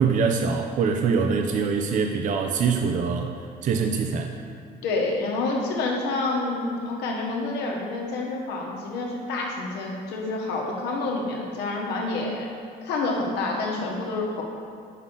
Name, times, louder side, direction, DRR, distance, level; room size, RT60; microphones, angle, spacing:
voice 1, 0.0-3.4 3.6-4.4, right 5 dB, 50° right, 4 dB, 0.4 m, -24 dB
voice 2, 4.8-12.5 12.8-14.4, left 3 dB, 85° left, -1 dB, 1.1 m, -28 dB
6.2 x 5.7 x 3.7 m, 2.5 s
cardioid pair, 110°, 17 cm